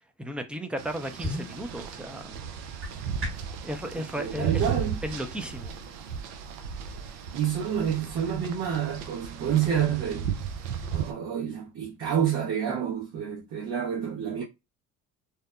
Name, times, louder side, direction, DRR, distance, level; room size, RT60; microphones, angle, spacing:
voice 1, 0.2-2.4 3.6-5.7, equal, 5° right, 0.4 m, -35 dB
sound 1, 0.8-11.1, right 8 dB, 80° right, 0.6 m, -35 dB
sound 2, 1.2-3.6, equal, 35° right, 1.2 m, -37 dB
voice 2, 3.9-5.0 7.3-10.3 10.9-14.4, right 8 dB, 60° right, 1.1 m, -28 dB
2.8 x 2.1 x 2.3 m
hypercardioid pair, 60°, 40 cm